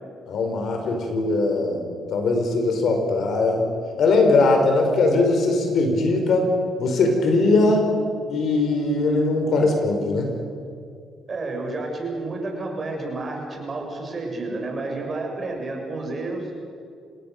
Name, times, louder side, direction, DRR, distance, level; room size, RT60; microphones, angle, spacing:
voice 1, 0.3-3.6 4.0-6.5 6.8-7.9 8.3-10.3, left 3 dB, 65° left, 3 dB, 4.8 m, -20 dB
voice 2, 11.3-16.5, right 2 dB, 40° right, 1 dB, 6.7 m, -30 dB
28.5 x 18.0 x 6.7 m, 2.4 s
cardioid pair, 90°, 0 cm